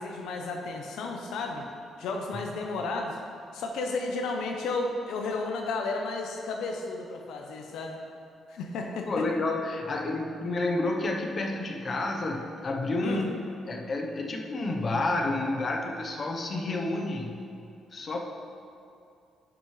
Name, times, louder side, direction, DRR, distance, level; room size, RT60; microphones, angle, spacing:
voice 1, 0.0-1.7 2.0-3.2 3.5-8.0 8.5-9.2 13.0-13.3, left 3 dB, 80° left, 2 dB, 0.7 m, -33 dB
voice 2, 9.1-13.3 13.7-17.3 17.9-18.2, left 2 dB, 45° left, 2 dB, 0.9 m, -30 dB
10.0 x 6.2 x 3.2 m, 2.5 s
cardioid pair, 90°, 0 cm